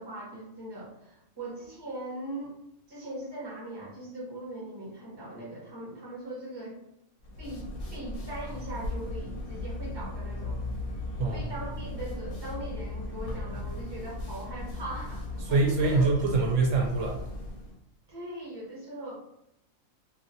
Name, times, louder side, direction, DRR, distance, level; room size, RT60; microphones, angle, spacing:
voice 1, 0.0-2.5 2.9-6.8 7.4-10.7 11.2-16.1 18.1-19.1, right 1 dB, 20° right, -5 dB, 0.9 m, -40 dB
sound 1, 7.2-17.7, left 2 dB, 70° left, 1.1 m, -37 dB
voice 2, 11.2-11.5 15.5-17.2, right 3 dB, 70° right, -2 dB, 0.9 m, -24 dB
3.0 x 2.6 x 2.6 m, 0.79 s
omnidirectional pair, 1.4 m